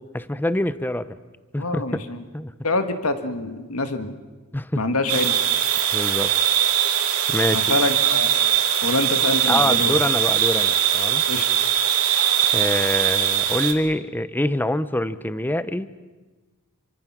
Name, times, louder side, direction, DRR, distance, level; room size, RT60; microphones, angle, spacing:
voice 1, 0.1-1.2 1.5-2.5 4.5-4.8 5.9-6.3 7.3-7.8 9.5-11.2 12.5-15.9, left 1 dB, 10° left, 14 dB, 0.7 m, -25 dB
voice 2, 1.6-2.2 2.6-4.2 4.7-5.3 7.5-8.3 8.8-9.9 11.3-11.5, left 2 dB, 75° left, 8 dB, 1.7 m, -25 dB
sound 1, 5.1-13.7, right 10 dB, 80° right, 2.3 m, -21 dB
27.0 x 24.5 x 6.1 m, 1.2 s
head